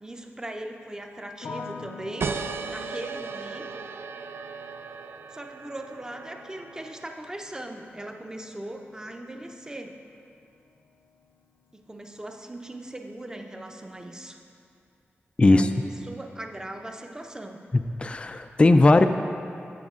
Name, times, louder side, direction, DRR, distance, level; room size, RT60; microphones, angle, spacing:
voice 1, 0.0-2.3 2.6-3.8 5.3-10.0 11.7-14.4 15.4-17.7, right 1 dB, 15° right, 3 dB, 0.6 m, -39 dB
sound 1, 1.4-12.5 12.8-13.5, left 5 dB, 70° left, 0.6 m, -48 dB
sound 2, 2.2-7.4, right 5 dB, 65° right, 0.3 m, -36 dB
voice 2, 15.4-15.7 18.0-19.1, left 2 dB, 25° left, 8 dB, 0.3 m, -17 dB
16.0 x 6.2 x 2.4 m, 2.5 s
wide cardioid pair, 100°, 4 cm